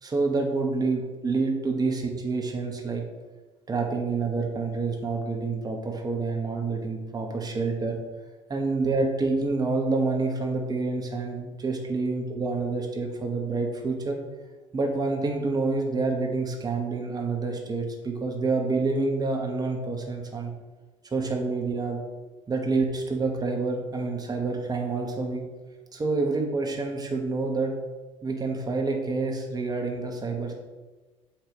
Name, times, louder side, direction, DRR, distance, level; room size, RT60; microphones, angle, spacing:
voice 1, 0.0-3.0 3.7-8.0 8.5-14.2 14.7-20.5 21.1-22.0 22.5-25.4 25.9-27.7 28.2-30.5, right 3 dB, 25° right, 1 dB, 1.1 m, -28 dB
8.3 x 2.9 x 5.1 m, 1.2 s
figure-of-eight pair, 55°, 16 cm